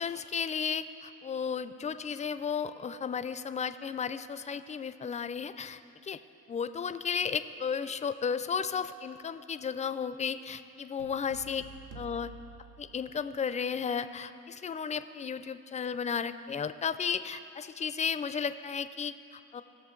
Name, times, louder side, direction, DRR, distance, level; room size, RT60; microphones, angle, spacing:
voice 1, 0.0-6.2 6.5-11.6 11.9-12.3 12.8-19.6, left 6 dB, 25° left, 12 dB, 0.4 m, -34 dB
sound 1, 11.0-13.5, right 4 dB, 90° right, 1.0 m, -50 dB
18.5 x 6.7 x 3.8 m, 2.6 s
cardioid pair, 90°, 30 cm